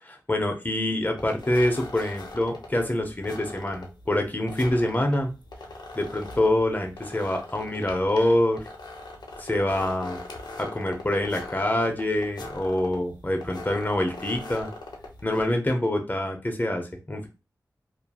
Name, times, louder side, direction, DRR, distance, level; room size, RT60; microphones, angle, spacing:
voice 1, 0.0-5.3 5.9-8.6 9.4-10.2 10.6-14.7 15.2-17.3, left 1 dB, 25° left, 3 dB, 0.8 m, -26 dB
sound 1, 1.2-15.6, left 2 dB, 80° left, 0.6 m, -41 dB
2.7 x 2.6 x 2.3 m, 0.30 s
cardioid pair, 45°, 7 cm